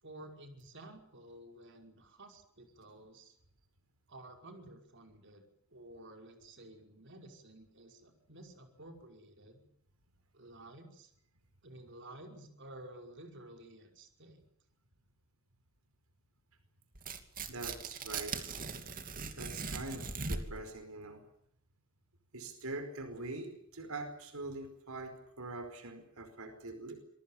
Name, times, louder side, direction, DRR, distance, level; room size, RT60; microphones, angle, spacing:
voice 1, 0.0-3.4 4.1-5.4 5.7-9.6 10.3-11.1 11.6-14.4, right 1 dB, 60° right, 4 dB, 5.5 m, -52 dB
Tearing, 17.0-20.7, right 4 dB, 40° right, 2.8 m, -40 dB
voice 2, 17.5-18.4 19.3-21.2 22.3-27.0, right 2 dB, 90° right, 8 dB, 4.9 m, -43 dB
27.0 x 22.5 x 7.3 m, 0.68 s
head